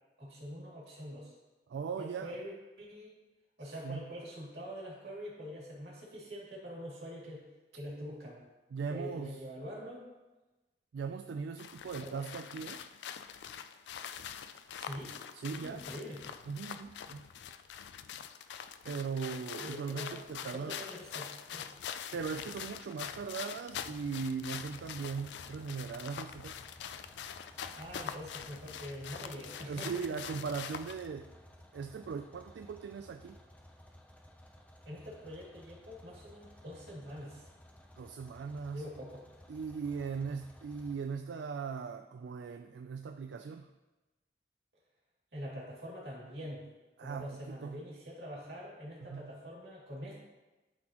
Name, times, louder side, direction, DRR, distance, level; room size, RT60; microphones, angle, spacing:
voice 1, 0.2-1.3 2.0-3.2 3.6-7.4 7.7-8.4 8.9-10.0 12.0-12.2 14.8-15.2 15.5-16.2 19.6-20.2 20.5-21.7 27.8-29.9 30.3-30.4 34.8-37.5 38.7-39.2 45.3-46.6 47.0-50.2, equal, 65° right, -5 dB, 2.6 m, -44 dB
voice 2, 1.7-2.4 3.6-4.0 8.7-9.4 10.9-12.8 15.3-15.8 16.5-17.2 18.8-20.8 22.1-26.6 29.7-31.3 31.7-33.4 38.0-38.8 39.5-43.7 47.0-47.8 49.0-49.3, right 5 dB, 85° right, 7 dB, 0.3 m, -39 dB
sound 1, 11.6-31.1, left 8 dB, 80° left, 0.3 m, -44 dB
sound 2, 24.7-41.0, equal, 10° left, 0.5 m, -57 dB
12.0 x 4.1 x 3.0 m, 1.1 s
head